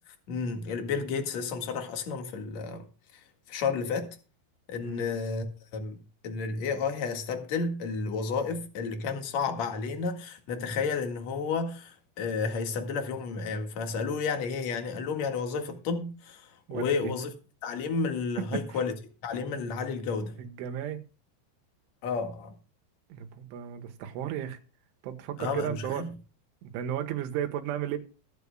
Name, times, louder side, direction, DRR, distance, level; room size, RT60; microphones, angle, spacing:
voice 1, 0.3-2.8 3.5-4.2 4.7-5.4 5.7-6.0 6.2-17.3 17.6-18.9 19.2-20.4 22.0-22.5 25.4-26.1, left 5 dB, 55° left, 2.2 m, -31 dB
voice 2, 16.7-17.1 18.5-18.8 20.4-21.0 23.1-24.6 25.0-26.0 26.6-28.0, right 10 dB, 80° right, 3.8 m, -34 dB
21.5 x 8.3 x 2.3 m
omnidirectional pair, 5.5 m